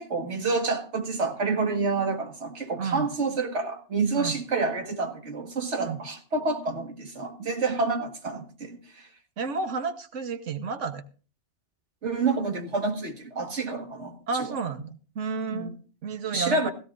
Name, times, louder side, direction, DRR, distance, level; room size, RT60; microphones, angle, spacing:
voice 1, 0.0-9.1 12.0-14.6 15.5-15.7 16.3-16.7, right 3 dB, 70° right, 2.1 m, -28 dB
voice 2, 2.8-3.1 4.2-4.4 5.8-6.0 9.4-11.0 14.3-16.7, right 5 dB, 90° right, 1.5 m, -32 dB
16.5 x 16.5 x 2.6 m
omnidirectional pair, 1.2 m